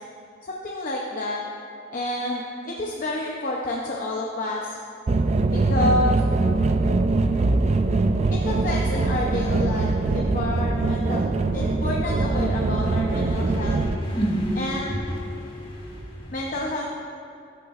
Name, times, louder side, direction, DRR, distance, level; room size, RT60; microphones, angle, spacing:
voice 1, 0.4-1.4 1.9-4.8 5.5-6.2 8.3-11.2 11.5-13.8 14.6-15.0 16.3-16.9, left 1 dB, 45° left, -2 dB, 0.7 m, -29 dB
sound 1, 5.1-13.9, right 3 dB, 35° right, 0.3 m, -22 dB
voice 2, 12.8-16.3, equal, 25° left, -3 dB, 1.6 m, -30 dB
17.5 x 6.7 x 2.4 m, 2.4 s
head